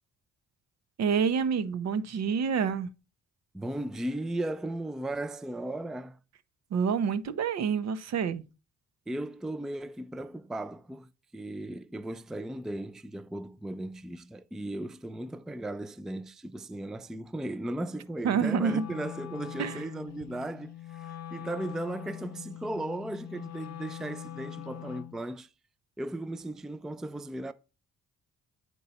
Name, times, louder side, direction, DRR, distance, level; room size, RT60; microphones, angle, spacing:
voice 1, 1.0-2.9 6.7-8.4 18.2-18.9 19.6-19.8, right 6 dB, 60° right, 0.8 m, -27 dB
voice 2, 3.5-6.2 9.1-25.5 26.0-27.5, right 1 dB, ahead, 0.3 m, -36 dB
Wind instrument woodwind instrument, 18.5-25.2, left 12 dB, 60° left, 0.5 m, -43 dB
8.7 x 4.6 x 4.1 m
cardioid pair, 90°, 30 cm